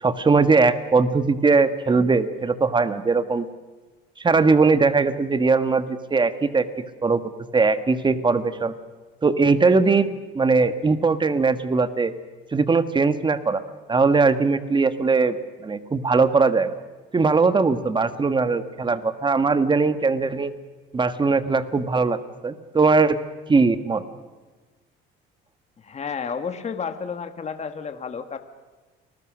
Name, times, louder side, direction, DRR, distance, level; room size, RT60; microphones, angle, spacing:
voice 1, 0.0-3.4 4.2-6.6 7.0-7.2 7.5-8.7 9.2-10.1 10.3-12.1 12.5-13.6 13.9-15.4 15.6-16.7 17.1-20.5 20.9-22.2 22.4-23.2 23.5-24.0, right 4 dB, 25° right, 11 dB, 1.6 m, -20 dB
voice 2, 25.8-28.4, left 6 dB, 35° left, 8 dB, 1.9 m, -31 dB
29.0 x 20.0 x 6.5 m, 1.3 s
cardioid pair, 100°, 20 cm